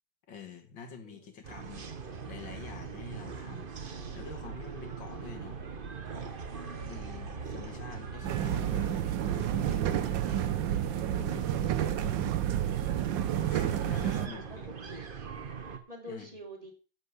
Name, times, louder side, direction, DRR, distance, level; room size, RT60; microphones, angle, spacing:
voice 1, 0.3-5.6 6.8-9.0 9.6-10.6 11.2-12.3 13.3-14.7 16.1-16.3, left 6 dB, 80° left, 6 dB, 2.5 m, -47 dB
sound 1, 1.4-15.8, right 5 dB, 35° right, 1.0 m, -42 dB
sound 2, 3.8-11.5, right 5 dB, 55° right, 1.9 m, -46 dB
sound 3, 8.2-14.3, right 11 dB, 90° right, 1.5 m, -30 dB
voice 2, 13.8-15.0 15.7-16.7, equal, 20° right, 2 dB, 3.0 m, -47 dB
11.0 x 5.5 x 8.1 m, 0.36 s
omnidirectional pair, 2.0 m